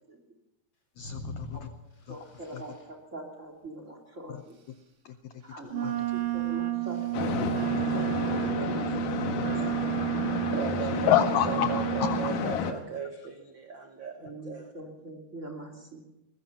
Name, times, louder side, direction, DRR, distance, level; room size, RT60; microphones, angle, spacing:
voice 1, 1.0-1.7 2.1-2.2 2.5-2.6 4.3-4.4 5.0-5.4 5.8-5.9 9.6-9.7 10.7-12.6 13.0-13.1, left 11 dB, 85° left, 10 dB, 1.6 m, -29 dB
sound 1, 1.0-2.8 5.6-7.7, left 2 dB, 30° left, 4.4 m, -46 dB
voice 2, 2.1-4.6 5.4-9.4 10.4-10.8 14.2-16.1, right 1 dB, 20° right, 1 dB, 2.7 m, -42 dB
Wind instrument woodwind instrument, 5.7-12.5, right 17 dB, 40° right, 2.1 m, -31 dB
sound 2, 7.1-12.7, left 6 dB, 65° left, 2.8 m, -32 dB
voice 3, 10.5-11.1 11.4-14.7, right 7 dB, 70° right, 5 dB, 1.1 m, -37 dB
22.5 x 20.5 x 5.8 m, 0.92 s
omnidirectional pair, 4.3 m